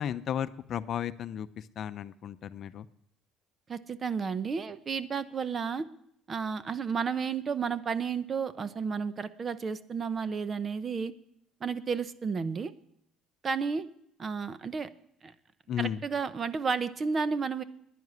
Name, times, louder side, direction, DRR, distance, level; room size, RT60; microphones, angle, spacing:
voice 1, 0.0-2.9 15.7-16.0, left 9 dB, 50° left, 13 dB, 0.6 m, -34 dB
voice 2, 3.7-5.9 6.3-11.1 11.6-12.7 13.4-13.9 14.2-14.9 15.2-15.3 15.8-17.6, right 5 dB, 35° right, 14 dB, 0.8 m, -32 dB
11.0 x 10.0 x 9.6 m, 0.75 s
cardioid pair, 110°, 0 cm